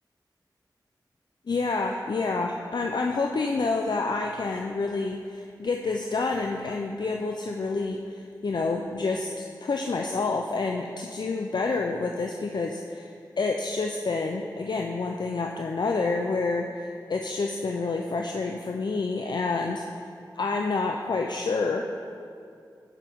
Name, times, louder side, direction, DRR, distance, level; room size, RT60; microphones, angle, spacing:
voice 1, 1.5-9.3 9.6-19.8 20.4-21.9, left 3 dB, 60° left, 2 dB, 0.5 m, -28 dB
15.0 x 5.9 x 3.6 m, 2.4 s
cardioid pair, 40°, 8 cm